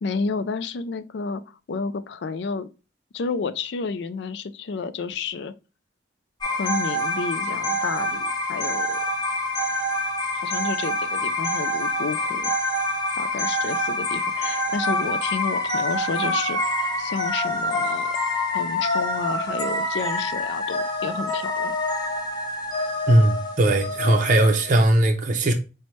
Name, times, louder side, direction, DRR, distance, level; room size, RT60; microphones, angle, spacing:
voice 1, 0.0-2.7 3.1-5.5 6.4-9.0 10.3-12.5 13.2-16.6 17.0-18.2 18.5-21.7, left 4 dB, 60° left, 0.4 m, -31 dB
sound 1, 6.4-24.8, left 1 dB, 20° left, 0.7 m, -26 dB
voice 2, 23.1-25.5, right 1 dB, 40° right, 0.5 m, -19 dB
5.5 x 2.1 x 3.0 m
head